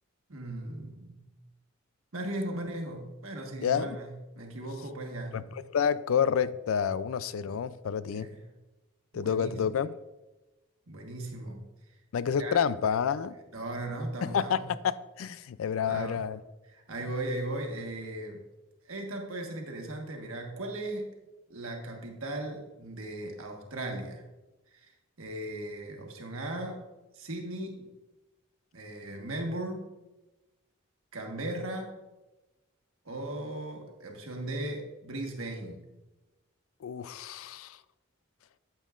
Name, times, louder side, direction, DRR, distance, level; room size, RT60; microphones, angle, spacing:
voice 1, 0.3-1.3 2.1-5.4 8.1-8.4 9.1-9.5 10.9-11.7 12.4-12.6 13.5-14.7 15.9-16.2 16.7-18.4 18.8-21.1 21.5-24.2 24.7-24.9 25.2-26.8 27.1-27.9 28.7-29.8 31.1-32.0 33.0-35.8, right 1 dB, 80° right, 1.4 m, -37 dB
voice 2, 3.6-4.0 5.3-8.3 9.1-9.9 12.1-13.3 14.2-16.4 36.8-37.8, left 7 dB, 80° left, 0.4 m, -29 dB
9.0 x 8.3 x 2.4 m
head